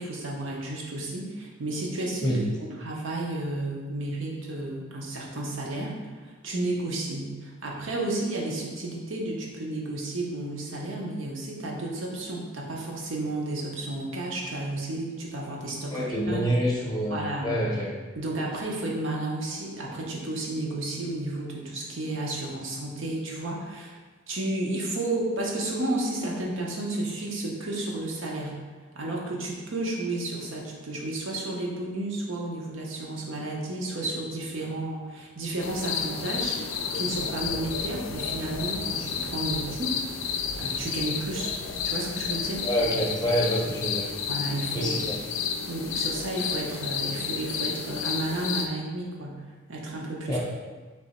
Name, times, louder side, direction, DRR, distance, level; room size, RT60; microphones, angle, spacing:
voice 1, 0.0-2.4 2.8-16.5 17.1-17.6 18.2-24.0 24.3-28.6 28.9-36.6 36.9-40.0 40.6-41.5 41.8-42.7 44.3-45.1 45.7-49.4 49.7-50.4, right 2 dB, 75° right, -2 dB, 0.8 m, -32 dB
voice 2, 15.9-17.9 42.6-44.1 44.7-45.2 50.3-50.4, equal, 20° left, -3 dB, 0.7 m, -27 dB
sound 1, 35.6-48.7, left 6 dB, 85° left, 0.4 m, -31 dB
3.4 x 3.0 x 4.2 m, 1.4 s
head